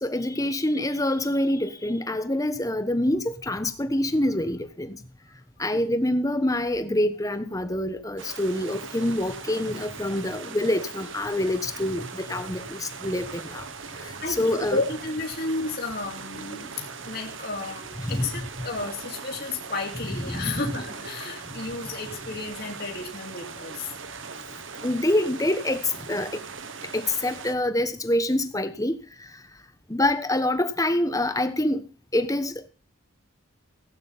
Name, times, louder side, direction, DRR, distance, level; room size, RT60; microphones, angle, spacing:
voice 1, 0.0-5.0 5.6-13.7 14.3-14.8 18.0-18.3 18.6-18.7 20.3-20.6 24.8-25.8 26.1-26.4 26.9-28.9 29.9-31.8 32.1-32.7, left 1 dB, 15° left, 1.2 m, -26 dB
sound 1, 8.2-27.6, right 5 dB, 65° right, 1.5 m, -40 dB
voice 2, 14.2-23.9, left 3 dB, 50° left, 2.6 m, -32 dB
16.5 x 8.9 x 5.8 m
head